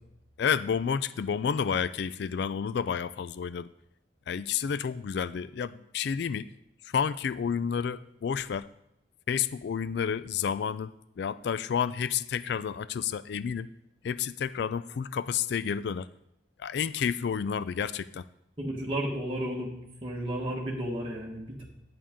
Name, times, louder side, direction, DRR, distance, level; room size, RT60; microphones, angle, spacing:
voice 1, 0.4-3.7 4.3-6.5 6.8-8.7 9.3-13.7 14.0-16.1 16.6-18.2, left 7 dB, 60° left, 16 dB, 0.3 m, -30 dB
voice 2, 18.6-21.6, right 1 dB, 30° right, -3 dB, 1.4 m, -33 dB
11.0 x 8.6 x 3.7 m, 0.85 s
head